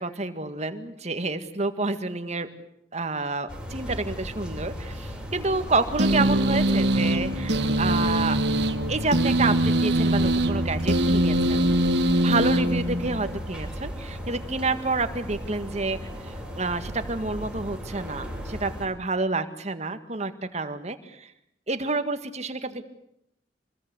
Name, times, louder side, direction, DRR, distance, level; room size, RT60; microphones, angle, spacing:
voice 1, 0.0-2.5 2.9-8.4 8.9-11.7 12.2-16.0 16.3-21.3 21.7-22.8, right 3 dB, 40° right, 9 dB, 1.9 m, -29 dB
sound 1, 3.5-18.9, equal, 5° right, 6.8 m, -35 dB
sound 2, 6.0-13.4, right 1 dB, 70° right, 1.5 m, -23 dB
27.0 x 21.0 x 8.2 m, 0.78 s
head